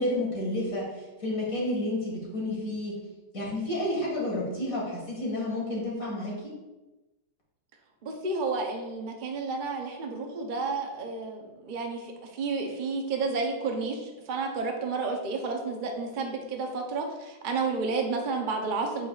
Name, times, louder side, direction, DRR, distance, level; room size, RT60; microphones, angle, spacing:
voice 1, 0.0-3.0 3.3-6.5, left 1 dB, 50° left, -4 dB, 2.3 m, -30 dB
voice 2, 8.0-19.1, right 4 dB, 50° right, 2 dB, 0.5 m, -31 dB
7.9 x 5.8 x 2.4 m, 1.1 s
omnidirectional pair, 2.0 m